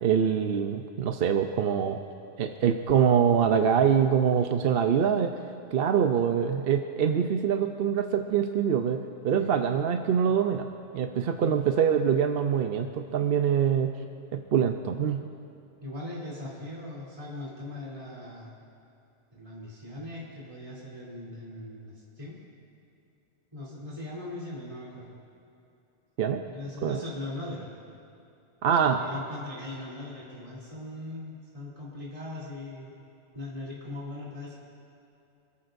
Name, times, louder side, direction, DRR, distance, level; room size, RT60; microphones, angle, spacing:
voice 1, 0.0-2.0 2.4-5.4 5.7-10.7 10.9-13.9 14.3-15.2 26.2-26.4 26.8-27.0 28.6-29.0, right 8 dB, 60° right, 6 dB, 0.8 m, -24 dB
voice 2, 15.8-18.5 19.3-22.3 23.5-25.2 26.4-27.7 28.7-32.9 33.3-34.6, left 2 dB, 25° right, -7 dB, 3.1 m, -40 dB
25.0 x 14.5 x 2.6 m, 2.6 s
omnidirectional pair, 1.2 m